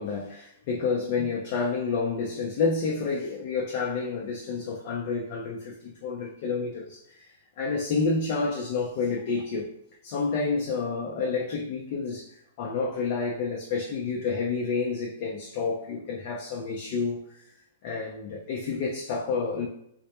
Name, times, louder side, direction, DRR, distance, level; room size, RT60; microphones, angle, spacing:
voice 1, 0.0-9.7 10.0-17.4 17.8-19.7, left 4 dB, 50° left, -2 dB, 0.5 m, -29 dB
2.1 x 2.0 x 2.9 m, 0.74 s
hypercardioid pair, 120°, 0 cm